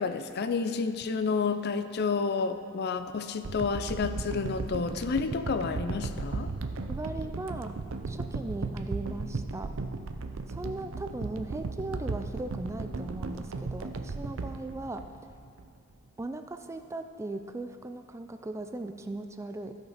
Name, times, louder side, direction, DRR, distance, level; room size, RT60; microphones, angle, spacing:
voice 1, 0.0-6.5, left 4 dB, 50° left, 10 dB, 0.5 m, -30 dB
sound 1, 3.4-15.7 16.2-16.3, right 3 dB, 65° right, 0.6 m, -36 dB
voice 2, 6.9-7.7 8.1-9.7 10.5-15.0 16.2-19.8, right 2 dB, 15° right, 7 dB, 0.3 m, -38 dB
14.0 x 6.5 x 5.0 m, 2.3 s
head